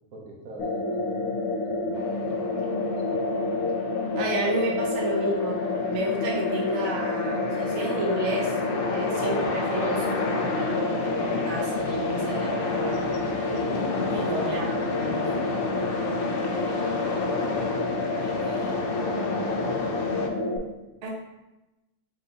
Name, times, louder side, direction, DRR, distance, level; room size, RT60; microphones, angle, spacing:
voice 1, 0.1-1.3 1.6-3.8 14.3-14.9 17.9-20.9, right 2 dB, 80° right, -2 dB, 1.3 m, -45 dB
sound 1, 0.6-20.6, left 3 dB, 80° left, 1.0 m, -28 dB
sound 2, 1.9-20.3, left 3 dB, 65° left, 0.6 m, -33 dB
voice 2, 4.2-8.6 8.9-13.2 14.1-15.3 18.2-18.9 21.0-21.1, right 1 dB, 60° right, -2 dB, 1.0 m, -32 dB
4.3 x 3.7 x 2.8 m, 1.0 s
omnidirectional pair, 1.4 m